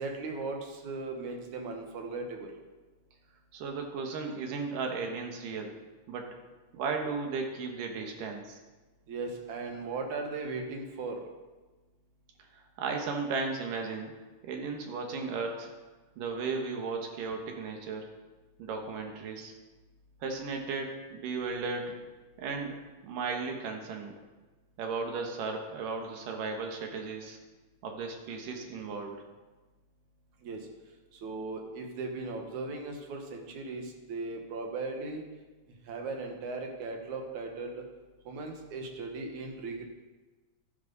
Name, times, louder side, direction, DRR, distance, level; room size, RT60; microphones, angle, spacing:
voice 1, 0.0-2.5 9.1-11.2 30.4-30.6 31.1-35.2 35.9-37.8 38.3-39.8, right 3 dB, 70° right, 2 dB, 2.7 m, -37 dB
voice 2, 3.5-5.7 6.1-6.3 6.7-8.6 12.8-14.1 14.4-15.7 16.2-18.1 18.6-19.5 20.2-22.0 22.4-24.1 24.8-27.4 27.8-29.2, right 4 dB, 85° right, 2 dB, 3.0 m, -35 dB
12.0 x 10.5 x 4.0 m, 1.2 s
omnidirectional pair, 3.7 m